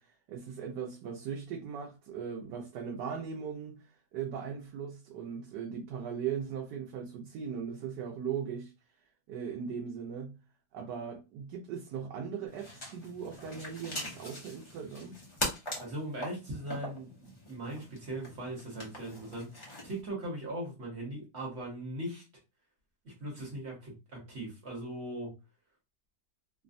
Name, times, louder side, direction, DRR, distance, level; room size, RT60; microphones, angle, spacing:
voice 1, 0.0-3.9 4.1-8.7 9.3-10.4 10.7-15.2, right 7 dB, 85° right, 1.2 m, -39 dB
sound 1, 12.5-20.0, left 1 dB, 35° left, 0.5 m, -42 dB
voice 2, 15.8-22.2 23.0-25.3, right 1 dB, 45° right, 1.1 m, -39 dB
3.2 x 2.1 x 2.5 m
omnidirectional pair, 1.8 m